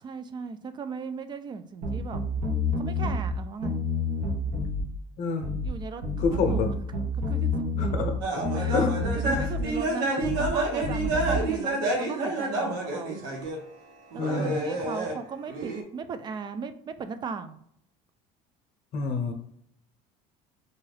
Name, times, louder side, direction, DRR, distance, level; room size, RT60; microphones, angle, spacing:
voice 1, 0.0-2.2 2.8-3.8 5.6-6.6 7.3-8.0 8.6-8.9 9.2-13.2 14.1-17.6, right 5 dB, 30° right, 10 dB, 0.3 m, -37 dB
sound 1, 1.8-3.3 3.6-4.9 5.4-5.7 6.0-8.1 8.4-9.7 10.2-10.5 10.8-11.4, left 2 dB, 55° right, 0.8 m, -28 dB
voice 2, 5.2-5.5 6.2-6.7 7.8-8.2 8.7-8.9 9.2-9.5 10.1-10.3 14.2-14.6 18.9-19.3, left 4 dB, 55° left, 4 dB, 0.7 m, -28 dB
sound 2, 8.2-13.6 14.1-15.2 15.5-15.8, right 2 dB, 80° right, 0.8 m, -29 dB
2.7 x 2.3 x 3.2 m, 0.69 s
supercardioid pair, 110°, 15 cm